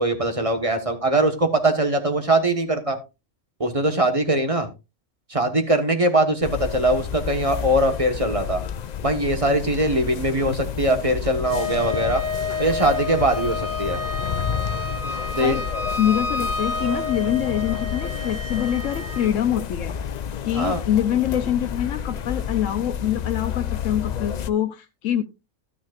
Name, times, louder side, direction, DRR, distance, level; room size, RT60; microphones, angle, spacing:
voice 1, 0.0-3.0 3.6-4.7 5.3-8.6 9.0-12.2 12.6-14.0 15.4-15.6 20.5-20.8, right 1 dB, 25° right, 6 dB, 1.4 m, -21 dB
sound 1, 6.4-24.5, left 8 dB, 60° left, 0.4 m, -30 dB
Wind instrument woodwind instrument, 11.5-19.3, left 3 dB, 15° left, 1.8 m, -30 dB
voice 2, 16.0-19.9 20.4-25.2, left 10 dB, 80° left, 7 dB, 1.1 m, -24 dB
13.0 x 9.2 x 2.5 m, 0.26 s
omnidirectional pair, 1.3 m